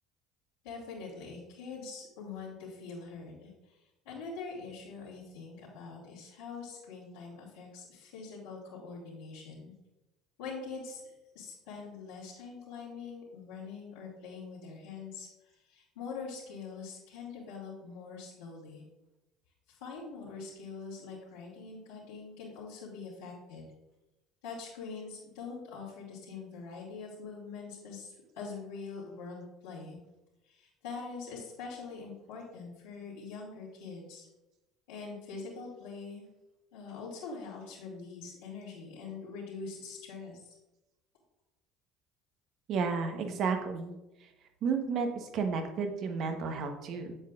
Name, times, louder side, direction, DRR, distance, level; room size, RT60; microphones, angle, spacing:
voice 1, 0.6-9.7 10.4-18.8 19.7-23.7 24.4-30.0 30.4-34.3 34.9-36.3 36.7-40.5, left 4 dB, 80° left, -9 dB, 2.5 m, -44 dB
voice 2, 42.7-44.0 44.6-47.2, right 5 dB, 55° right, 5 dB, 1.1 m, -32 dB
8.0 x 7.5 x 2.5 m, 0.98 s
hypercardioid pair, 65°, 0 cm